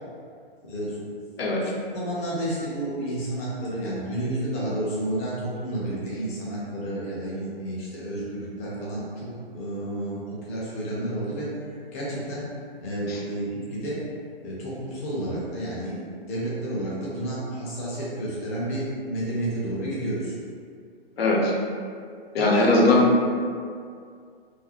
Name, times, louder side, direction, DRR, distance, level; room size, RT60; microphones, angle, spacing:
voice 1, 0.6-1.2 1.6-12.5 12.8-14.0 14.4-20.4 22.4-22.7, right 1 dB, 15° left, -7 dB, 0.3 m, -31 dB
voice 2, 21.2-21.5 22.3-23.3, left 2 dB, 80° left, -2 dB, 0.6 m, -19 dB
2.4 x 2.0 x 2.7 m, 2.2 s
hypercardioid pair, 130°, 30 cm